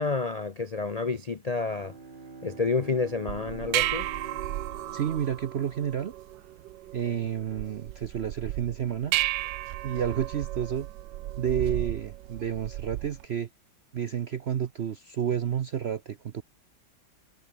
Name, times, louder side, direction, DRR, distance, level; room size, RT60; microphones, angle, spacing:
voice 1, 0.0-1.9 2.4-4.1, left 4 dB, 60° left, 0.4 m, -29 dB
Bowed string instrument, 1.4-6.2, right 4 dB, 30° right, 1.7 m, -46 dB
sound 1, 3.3-13.2, right 15 dB, 80° right, 1.3 m, -34 dB
voice 2, 4.9-6.1 6.9-9.1 9.8-10.9 11.4-13.5 13.9-16.4, right 9 dB, 65° right, 0.6 m, -30 dB
omnidirectional pair, 2.0 m